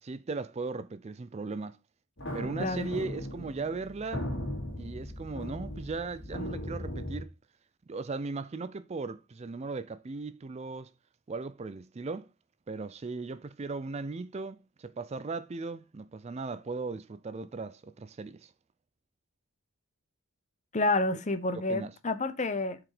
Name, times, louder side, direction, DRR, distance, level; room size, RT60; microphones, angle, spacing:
voice 1, 0.0-1.8 2.3-4.3 4.8-7.3 7.9-10.9 11.3-12.3 12.7-18.5 21.5-21.9, right 3 dB, 30° right, 0.4 m, -37 dB
sound 1, 2.2-7.2, left 1 dB, 55° left, 2.4 m, -38 dB
voice 2, 2.6-2.9 20.7-22.8, left 2 dB, 35° left, 0.8 m, -29 dB
7.3 x 4.9 x 4.9 m
head